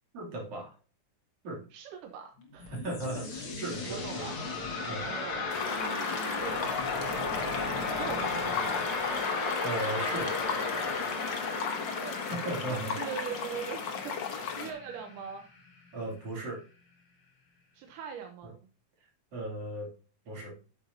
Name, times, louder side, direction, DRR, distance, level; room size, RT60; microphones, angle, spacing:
voice 1, 0.1-0.8 1.4-1.7 2.7-4.3 4.9-5.1 9.6-10.4 12.0-12.9 15.9-16.6 19.3-19.9 20.3-20.6, right 2 dB, 50° right, -2 dB, 3.8 m, -37 dB
voice 2, 1.7-2.9 3.2-3.6 3.9-4.4 5.0-6.7 7.2-8.9 11.5-12.3 12.7-15.4 17.7-18.5, right 7 dB, 85° right, 4 dB, 2.5 m, -42 dB
sound 1, 2.4-15.3, left 3 dB, 45° left, 2.5 m, -34 dB
sound 2, 5.5-14.7, left 6 dB, 60° left, 1.2 m, -36 dB
10.0 x 7.8 x 2.8 m, 0.36 s
omnidirectional pair, 3.6 m